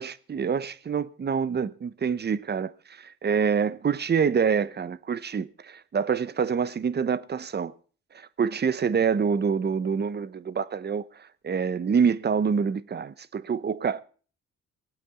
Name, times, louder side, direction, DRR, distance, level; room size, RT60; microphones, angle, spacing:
voice 1, 0.0-7.7 8.1-11.1 11.4-14.0, right 6 dB, 35° right, 0.9 m, -26 dB
19.5 x 8.5 x 7.0 m
cardioid pair, 90°, 30 cm